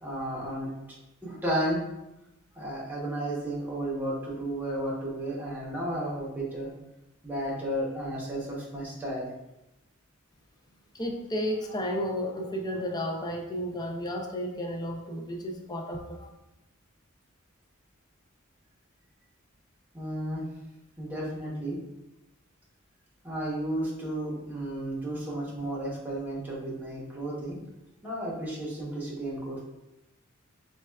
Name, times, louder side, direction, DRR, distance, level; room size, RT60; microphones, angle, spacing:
voice 1, 0.0-0.7 1.2-1.8 2.5-6.7 7.2-9.3 19.9-20.4 21.0-21.8 23.2-27.6 28.0-29.6, right 1 dB, 10° right, -5 dB, 0.8 m, -33 dB
voice 2, 10.9-16.3, equal, 20° left, 2 dB, 0.4 m, -32 dB
4.2 x 2.3 x 2.2 m, 0.92 s
head